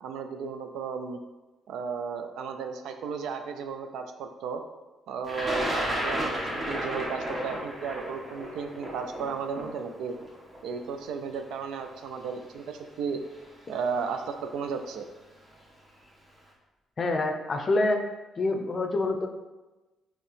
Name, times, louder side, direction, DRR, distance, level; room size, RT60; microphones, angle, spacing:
voice 1, 0.0-1.2 1.7-4.6 5.1-10.1 10.6-13.2 13.7-15.1, right 6 dB, 85° right, 7 dB, 0.4 m, -34 dB
Thunder, 5.3-11.3 12.2-12.3 13.4-13.7 14.0-14.5, equal, 25° right, 1.3 m, -33 dB
voice 2, 17.0-18.0 18.4-19.3, left 2 dB, 40° left, 5 dB, 0.5 m, -26 dB
4.4 x 3.0 x 3.3 m, 1.1 s
cardioid pair, 90°, 0 cm